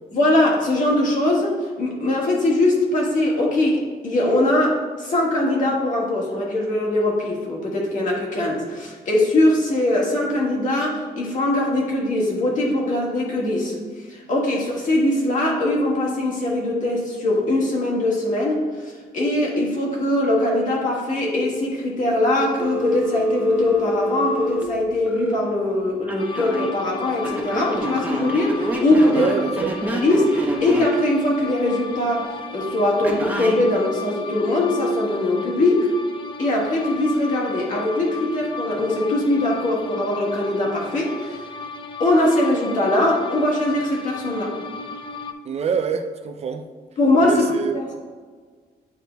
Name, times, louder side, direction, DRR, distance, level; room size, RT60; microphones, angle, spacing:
voice 1, 0.1-13.8 14.1-29.3 29.9-35.9 36.4-41.5 42.0-44.6 47.0-47.9, left 1 dB, 50° left, -3 dB, 1.6 m, -21 dB
Telephone, 22.6-25.4 26.1-26.7 27.2-31.0 33.0-33.6, right 1 dB, 10° right, 0.8 m, -27 dB
sound 1, 26.2-45.3, left 3 dB, 30° left, 0.4 m, -35 dB
voice 2, 29.1-29.8 45.4-46.7 47.2-47.8, right 6 dB, 40° right, 7 dB, 0.3 m, -25 dB
9.4 x 4.5 x 2.2 m, 1.5 s
cardioid pair, 145°, 17 cm